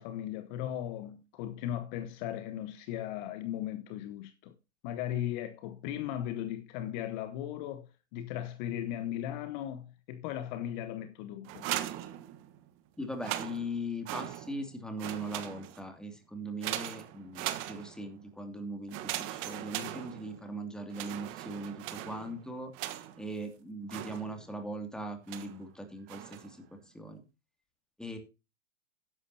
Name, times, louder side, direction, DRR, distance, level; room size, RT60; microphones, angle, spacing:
voice 1, 0.0-4.5 4.8-11.7, left 11 dB, 40° left, 1.3 m, -37 dB
sound 1, 11.4-12.7 13.1-14.7 15.0-15.9 16.6-18.2 18.9-20.5 20.9-23.3 23.9-24.6 25.3-25.6 26.1-26.6, right 14 dB, 35° right, 1.4 m, -39 dB
voice 2, 13.0-27.2 28.0-28.2, right 1 dB, ahead, 2.6 m, -40 dB
13.5 x 11.0 x 2.8 m
hypercardioid pair, 115°, 35 cm